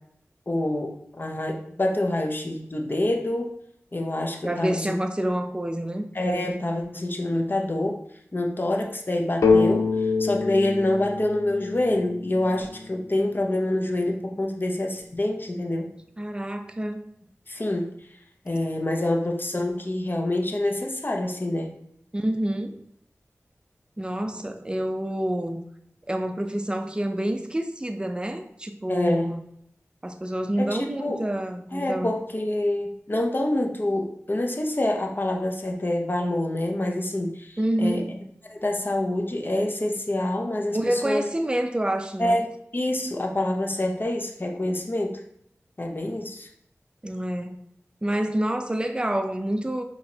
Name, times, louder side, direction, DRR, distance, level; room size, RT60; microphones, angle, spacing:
voice 1, 0.5-3.5 3.9-4.8 6.1-8.0 8.3-9.9 10.2-15.9 17.5-17.9 18.4-21.7 28.9-29.3 30.6-31.2 31.7-38.0 38.5-41.3 42.2-42.5 42.7-45.2 45.8-46.5, left 1 dB, 40° left, 0.8 m, -26 dB
voice 2, 4.4-6.1 16.2-17.1 22.1-22.8 24.0-25.6 26.1-29.4 30.0-32.1 37.6-38.1 40.7-42.4 47.0-47.6 48.0-49.8, right 1 dB, 20° right, 0.5 m, -27 dB
sound 1, 9.4-13.1, left 4 dB, 80° left, 0.5 m, -25 dB
5.5 x 3.0 x 2.8 m
wide cardioid pair, 55°, 5 cm